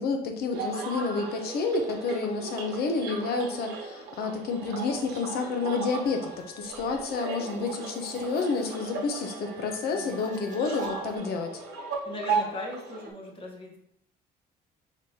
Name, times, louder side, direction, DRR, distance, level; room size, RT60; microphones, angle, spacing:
voice 1, 0.0-6.3 6.6-11.6, left 4 dB, 65° left, 4 dB, 0.8 m, -29 dB
sound 1, 0.5-13.1, right 5 dB, 80° right, 1.0 m, -36 dB
sound 2, 6.0-11.2, left 3 dB, 45° right, 1.1 m, -51 dB
voice 2, 12.0-13.8, left 1 dB, 30° left, -1 dB, 1.3 m, -39 dB
5.0 x 3.7 x 2.8 m, 0.72 s
cardioid pair, 110°, 17 cm